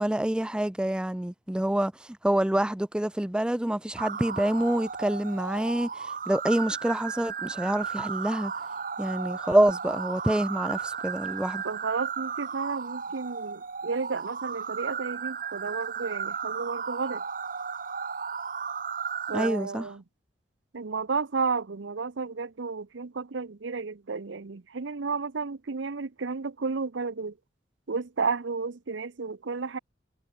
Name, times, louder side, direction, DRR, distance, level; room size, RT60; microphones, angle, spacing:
voice 1, 0.0-8.5 9.0-11.6 19.3-19.9, right 1 dB, 5° right, 0.3 m, -27 dB
sound 1, 4.0-19.5, right 6 dB, 45° right, 1.8 m, -35 dB
voice 2, 11.6-17.2 19.3-20.0 20.7-27.3 27.9-29.8, right 4 dB, 75° right, 0.7 m, -32 dB
head